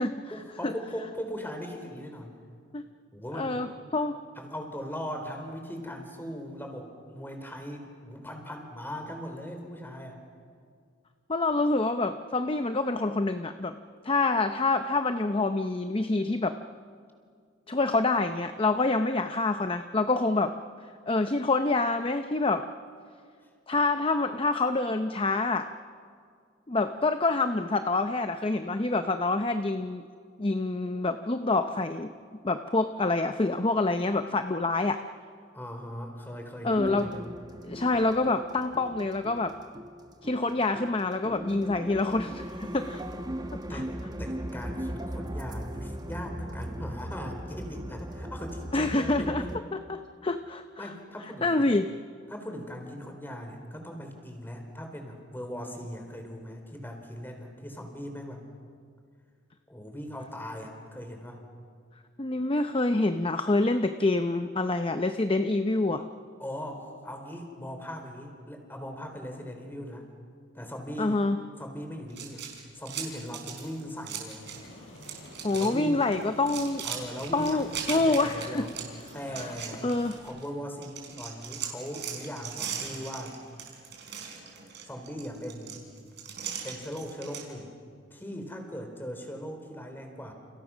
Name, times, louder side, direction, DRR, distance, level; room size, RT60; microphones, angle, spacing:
voice 1, 0.3-2.3 3.1-3.7 4.4-10.2 35.5-37.3 43.7-43.9 44.2-49.4 50.8-51.8 52.3-58.4 59.7-61.4 66.4-70.1 70.5-71.2 71.6-72.4 72.7-74.4 75.5-76.1 76.8-78.7 79.1-79.9 80.2-83.4 84.8-86.0 86.6-87.8 88.1-90.3, equal, 10° left, 4 dB, 3.9 m, -39 dB
voice 2, 3.3-3.7 3.9-4.2 11.3-13.7 14.0-16.6 17.7-20.5 21.1-22.6 23.7-25.7 26.7-30.0 30.4-32.1 32.4-35.0 36.6-37.1 37.6-39.5 40.2-43.0 43.7-43.8 48.7-49.4 49.7-50.9 51.4-51.9 62.2-66.0 71.0-71.4 75.4-76.8 77.3-78.7 79.4-79.5 79.8-80.1, left 2 dB, 30° left, 8 dB, 0.7 m, -26 dB
sound 1, 36.8-49.6, right 1 dB, 20° right, 1.1 m, -38 dB
sound 2, 72.1-74.7 74.9-75.7 76.0-80.5 80.8-87.4, right 8 dB, 60° right, 4.9 m, -39 dB
Aircraft, 74.4-80.2, left 1 dB, 90° left, 7.2 m, -48 dB
30.0 x 29.5 x 6.3 m, 2.1 s
head